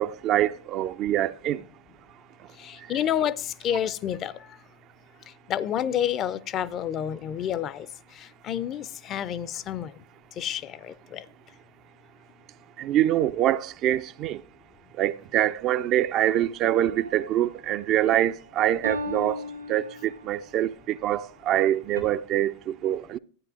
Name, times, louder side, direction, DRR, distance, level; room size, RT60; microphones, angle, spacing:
voice 1, 0.0-1.6 12.8-14.4 15.0-19.4 19.7-23.2, right 12 dB, 35° right, 0.3 m, -25 dB
voice 2, 2.6-4.3 5.5-7.9 8.1-9.9 10.4-11.2, left 10 dB, 30° left, 0.4 m, -29 dB
sound 1, 16.8-17.5 18.8-20.4 22.0-22.1, equal, 85° right, 1.9 m, -36 dB
13.5 x 9.2 x 2.5 m
figure-of-eight pair, 90°, 0 cm